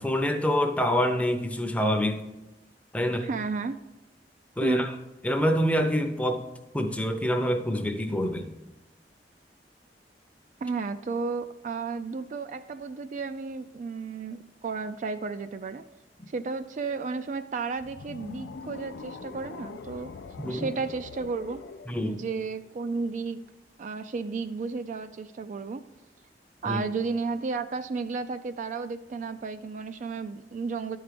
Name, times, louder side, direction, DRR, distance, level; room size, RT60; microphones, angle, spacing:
voice 1, 0.0-2.2 2.9-3.3 4.6-4.9 5.2-6.4 6.7-8.5 20.4-20.7 21.9-22.2 26.7-26.8, equal, 10° left, 6 dB, 0.6 m, -26 dB
voice 2, 3.0-3.8 4.6-4.9 10.6-15.8 16.3-20.1 20.5-21.6 22.0-23.4 23.8-25.8 26.6-31.0, right 4 dB, 45° right, 10 dB, 0.3 m, -33 dB
sound 1, 17.8-23.0, left 4 dB, 85° left, 0.4 m, -43 dB
12.0 x 4.7 x 5.1 m, 1.0 s
head